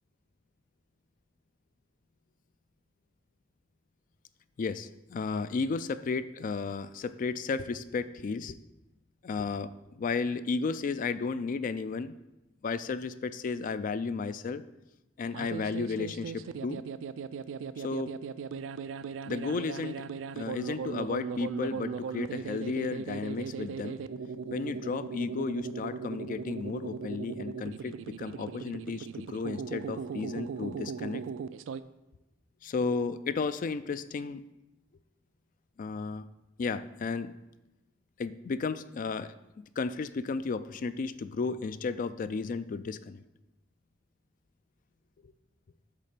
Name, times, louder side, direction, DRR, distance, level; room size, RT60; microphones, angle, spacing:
voice 1, 4.6-8.6 9.2-12.2 12.6-14.6 15.2-16.8 17.8-18.1 19.3-20.1 20.3-24.0 24.5-31.2 32.6-34.4 35.8-36.3 36.6-37.3 38.2-43.2, left 4 dB, 45° left, 13 dB, 0.3 m, -33 dB
sound 1, 15.2-31.8, right 6 dB, 75° right, 0.3 m, -38 dB
8.4 x 3.3 x 6.6 m, 0.95 s
head